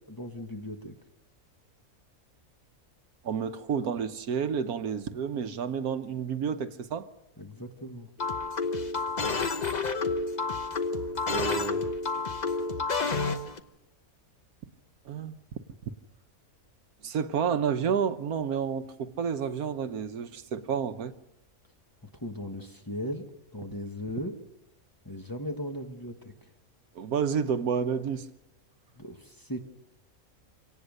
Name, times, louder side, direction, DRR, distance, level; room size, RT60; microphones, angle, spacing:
voice 1, 0.1-0.9 7.4-8.1 22.2-23.3 23.5-24.3 25.0-26.3 29.0-29.7, equal, 15° left, 1.4 m, -37 dB
voice 2, 3.2-7.1 11.3-11.9 15.1-15.4 17.0-21.1 26.9-28.3, right 7 dB, 90° right, 1.4 m, -30 dB
sound 1, 8.2-13.6, left 4 dB, 35° left, 1.0 m, -30 dB
25.0 x 18.0 x 6.5 m
omnidirectional pair, 1.5 m